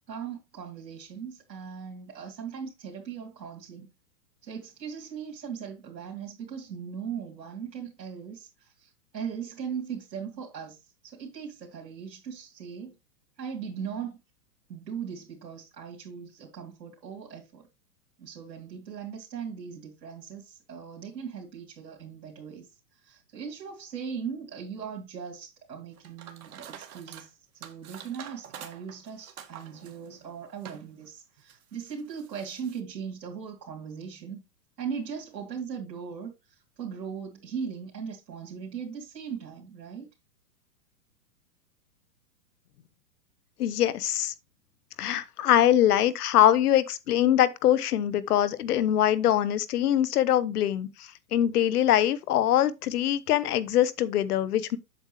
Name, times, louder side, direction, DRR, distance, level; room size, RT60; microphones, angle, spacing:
voice 1, 0.1-3.9 4.4-12.9 13.4-14.2 14.7-17.6 18.2-34.4 34.8-40.1, right 7 dB, 80° right, 2.8 m, -39 dB
sound 1, 26.0-27.3 27.6-30.9 31.4-32.8, right 9 dB, 60° right, 1.6 m, -47 dB
voice 2, 43.6-44.3 45.0-54.8, left 11 dB, 65° left, 1.1 m, -23 dB
8.0 x 7.0 x 3.0 m
hypercardioid pair, 140°, 49 cm